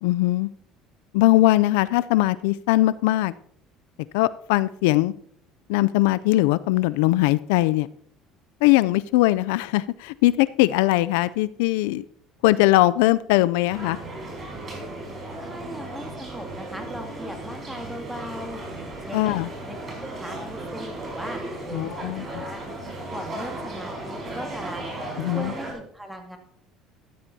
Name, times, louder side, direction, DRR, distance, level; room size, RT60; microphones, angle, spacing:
voice 1, 0.0-0.5 1.1-3.3 4.1-5.1 5.7-7.9 8.6-12.0 12.4-14.0 19.1-19.5 21.7-22.4 25.2-25.5, left 17 dB, 85° left, 17 dB, 0.3 m, -20 dB
sound 1, 13.7-25.7, right 2 dB, 35° right, 5.1 m, -35 dB
voice 2, 15.4-18.6 19.0-19.4 19.6-19.7 20.0-21.4 21.7-22.6 23.1-24.8 25.3-26.4, equal, 5° right, 3 dB, 2.2 m, -38 dB
13.0 x 12.5 x 2.7 m, 0.65 s
supercardioid pair, 105°, 0 cm